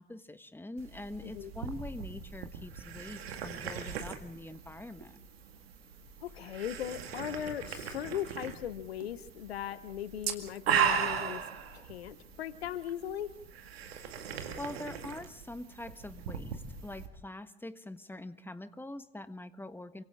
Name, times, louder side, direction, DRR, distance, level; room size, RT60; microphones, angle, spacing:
voice 1, 0.0-5.1 14.2-20.0, left 1 dB, 5° left, 11 dB, 1.5 m, -44 dB
sound 1, 0.8-17.1, right 7 dB, 85° right, 2.0 m, -38 dB
voice 2, 6.2-11.4 11.7-13.3, left 10 dB, 85° left, 15 dB, 1.0 m, -38 dB
28.0 x 25.5 x 3.7 m, 0.64 s
hypercardioid pair, 55°, 30 cm